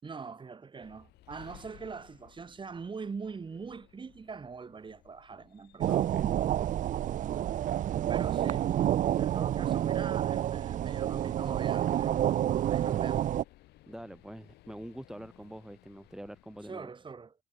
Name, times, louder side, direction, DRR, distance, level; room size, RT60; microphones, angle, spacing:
voice 1, 0.0-5.9 8.1-8.7 9.2-12.3 12.6-13.3 16.7-17.3, right 5 dB, 30° right, 5.1 m, -42 dB
sound 1, 0.8-16.7, left 17 dB, 80° left, 4.0 m, -60 dB
sound 2, 5.8-13.4, right 11 dB, 50° right, 0.6 m, -29 dB
voice 2, 5.9-6.3 13.9-16.9, right 1 dB, 5° right, 2.6 m, -45 dB
cardioid pair, 110°, 17 cm